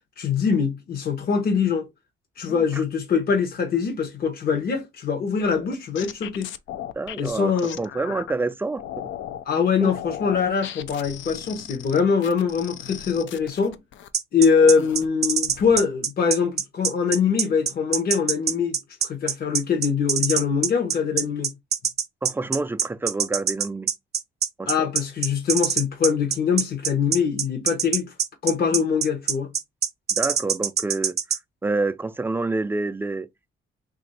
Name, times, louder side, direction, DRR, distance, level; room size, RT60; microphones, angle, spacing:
voice 1, 0.2-1.9 2.4-6.5 7.2-7.8 9.5-13.8 14.3-21.5 24.7-28.1 28.4-29.5, left 6 dB, 50° left, 0.9 m, -23 dB
voice 2, 2.4-2.8 7.0-8.8 9.8-9.9 22.2-23.9 24.6-24.7 30.1-31.2 31.6-33.5, right 3 dB, 10° right, 0.3 m, -28 dB
sound 1, 5.4-8.3 8.8-9.4 9.8-14.1 14.4-15.1 15.4-15.8, left 11 dB, 75° left, 0.5 m, -37 dB
sound 2, 14.1-31.4, right 8 dB, 55° right, 0.8 m, -24 dB
3.0 x 2.5 x 4.1 m
cardioid pair, 90°, 20 cm